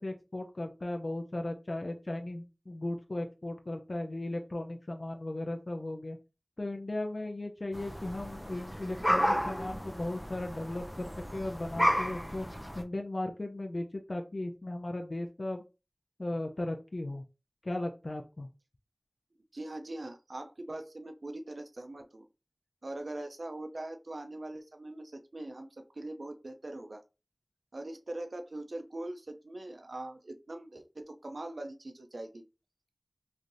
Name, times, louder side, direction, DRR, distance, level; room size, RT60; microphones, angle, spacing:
voice 1, 0.0-6.2 6.6-12.5 12.8-15.6 16.2-17.2 17.6-18.5, left 1 dB, 65° left, 3 dB, 0.4 m, -36 dB
sound 1, 7.7-12.8, equal, ahead, 0.5 m, -32 dB
voice 2, 19.5-22.3 22.8-27.0 27.7-32.4, right 1 dB, 90° right, 6 dB, 0.3 m, -42 dB
3.1 x 2.6 x 2.5 m, 0.29 s
wide cardioid pair, 45°, 0 cm